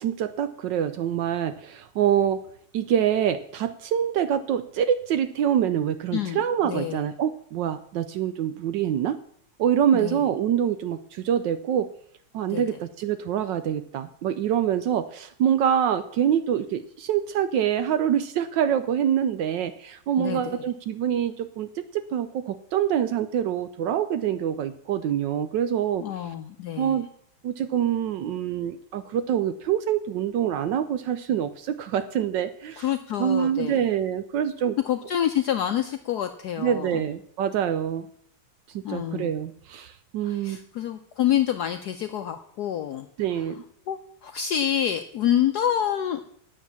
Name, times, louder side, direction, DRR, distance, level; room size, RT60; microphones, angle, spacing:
voice 1, 0.0-2.4 2.7-9.2 9.6-11.9 12.3-26.0 26.8-27.1 27.4-32.8 33.2-34.8 36.6-38.1 38.7-40.6 43.2-43.6, right 9 dB, 75° right, 12 dB, 1.1 m, -25 dB
voice 2, 6.1-7.0 9.9-10.2 12.5-12.8 20.2-20.6 26.0-27.0 32.8-33.9 34.8-37.1 38.8-39.3 40.2-43.1 43.4-43.5 43.9-46.3, left 10 dB, 75° left, 8 dB, 0.9 m, -27 dB
9.5 x 7.4 x 6.9 m, 0.65 s
omnidirectional pair, 2.3 m